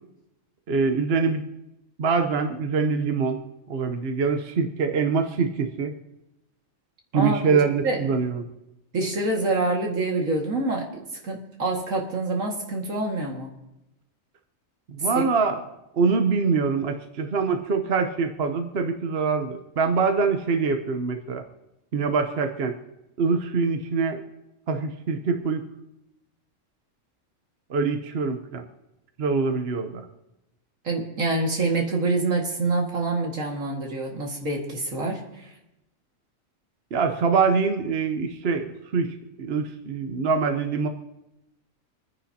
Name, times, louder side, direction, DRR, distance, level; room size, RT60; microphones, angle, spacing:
voice 1, 0.7-1.4 2.0-3.4 3.7-5.9 7.1-8.5 14.9-15.6 15.9-21.4 21.9-22.8 23.2-24.2 24.7-25.6 27.7-28.6 29.2-30.0 36.9-40.9, right 5 dB, 55° right, 6 dB, 1.1 m, -24 dB
voice 2, 8.9-10.9 11.2-13.5 15.2-15.3 30.8-35.5, right 2 dB, 80° right, 0 dB, 2.4 m, -26 dB
27.5 x 10.0 x 2.8 m, 0.92 s
omnidirectional pair, 1.4 m